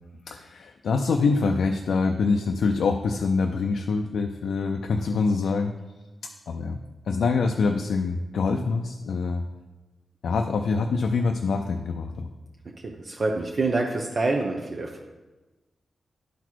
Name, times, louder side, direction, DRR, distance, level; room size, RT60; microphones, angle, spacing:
voice 1, 0.3-5.7 6.5-6.8 7.1-9.4 10.2-12.3, left 4 dB, 85° left, 4 dB, 0.4 m, -25 dB
voice 2, 12.8-15.0, right 3 dB, 50° right, 0 dB, 0.8 m, -26 dB
11.0 x 4.0 x 4.6 m, 1.2 s
cardioid pair, 70°, 0 cm